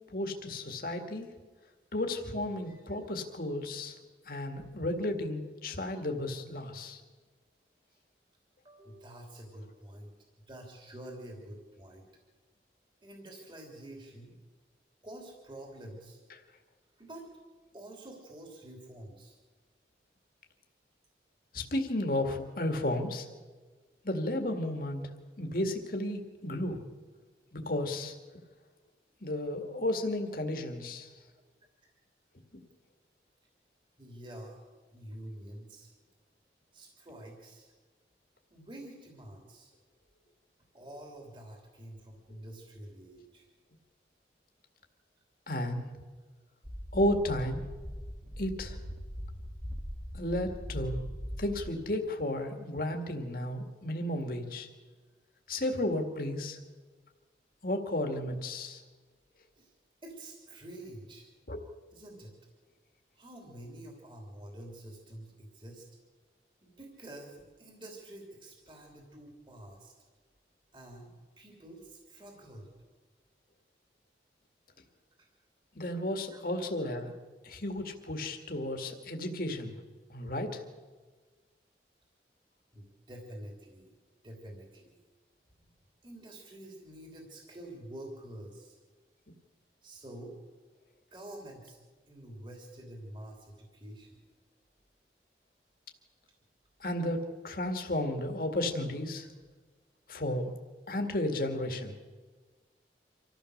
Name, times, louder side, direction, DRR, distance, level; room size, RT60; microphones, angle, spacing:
voice 1, 0.1-1.3 1.9-4.0 4.3-7.0 21.5-23.3 24.0-25.0 25.4-26.8 27.5-28.1 29.2-31.1 45.5-45.8 46.9-47.6 48.4-48.8 50.1-51.0 51.4-54.7 55.5-56.6 57.6-58.8 61.5-61.6 75.7-77.1 77.4-79.7 80.1-80.6 96.8-99.3 100.1-100.5 100.9-101.9, left 1 dB, 50° left, 4 dB, 2.1 m, -33 dB
voice 2, 8.6-10.1 10.5-12.1 13.0-14.3 15.0-16.2 17.0-17.3 17.7-19.4 31.8-31.9 34.0-35.9 36.7-37.7 38.5-39.7 40.7-43.5 59.6-59.7 60.0-61.3 61.9-62.3 63.2-65.9 66.6-69.9 70.7-72.7 75.2-75.3 76.2-76.7 82.7-83.9 84.2-85.0 86.0-88.8 89.8-90.4 91.1-91.8 92.1-94.2, right 1 dB, 30° right, 0 dB, 3.2 m, -48 dB
sound 1, 46.6-51.7, equal, 10° right, 1.6 m, -40 dB
26.0 x 15.0 x 6.6 m, 1.4 s
head